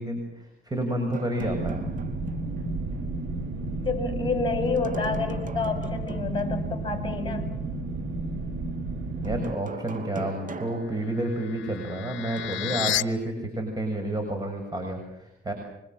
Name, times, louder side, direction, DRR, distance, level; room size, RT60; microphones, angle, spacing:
voice 1, 0.0-1.9 9.2-15.5, right 1 dB, 20° right, 4 dB, 6.8 m, -30 dB
sound 1, 1.1-2.6 2.9-3.0 4.7-6.7 9.2-11.7 12.4-13.0, right 4 dB, 40° right, 2.8 m, -40 dB
sound 2, 1.4-9.4, right 2 dB, 80° right, 6.3 m, -32 dB
voice 2, 3.8-7.5, left 4 dB, 25° left, 6 dB, 8.0 m, -29 dB
sound 3, 10.8-13.0, left 13 dB, 70° left, 0.9 m, -32 dB
26.0 x 25.0 x 7.8 m, 0.84 s
cardioid pair, 90°, 20 cm